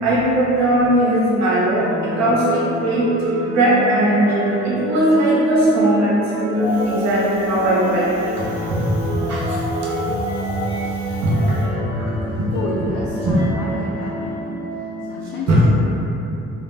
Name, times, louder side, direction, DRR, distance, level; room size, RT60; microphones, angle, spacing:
voice 1, 0.0-3.1 3.5-8.2 8.6-9.6 11.2-12.5 13.2-13.4 15.5-15.6, right 1 dB, 65° right, -8 dB, 0.8 m, -19 dB
sound 1, 1.8-15.0, right 1 dB, 85° right, 1.5 m, -28 dB
Wind, 6.6-11.7, left 1 dB, 5° right, 0.9 m, -31 dB
voice 2, 12.5-14.5 15.0-15.9, left 2 dB, 75° left, -5 dB, 0.5 m, -29 dB
2.6 x 2.1 x 3.2 m, 2.9 s
cardioid pair, 90°, 30 cm